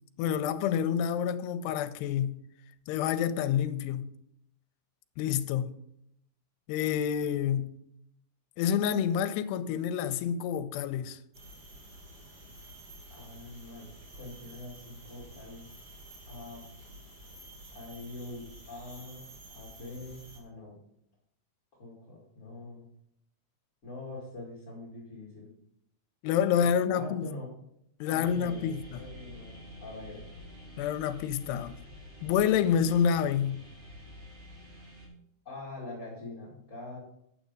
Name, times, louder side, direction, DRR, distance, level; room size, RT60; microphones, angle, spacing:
voice 1, 0.2-2.4 2.9-4.1 5.2-5.7 6.7-7.7 8.6-11.2 26.2-27.2 28.0-29.0 30.8-31.8 32.2-33.6, left 8 dB, 85° left, 2.7 m, -28 dB
sound 1, 11.3-20.4, right 1 dB, 35° right, 1.6 m, -50 dB
voice 2, 13.1-15.6 16.3-16.6 17.7-20.8 21.8-22.8 23.8-25.5 26.7-27.5 28.1-30.2 35.4-37.0, left 2 dB, 30° left, 1.4 m, -44 dB
sound 2, 28.2-35.1, equal, 60° right, 5.4 m, -49 dB
9.3 x 7.2 x 5.3 m
omnidirectional pair, 4.8 m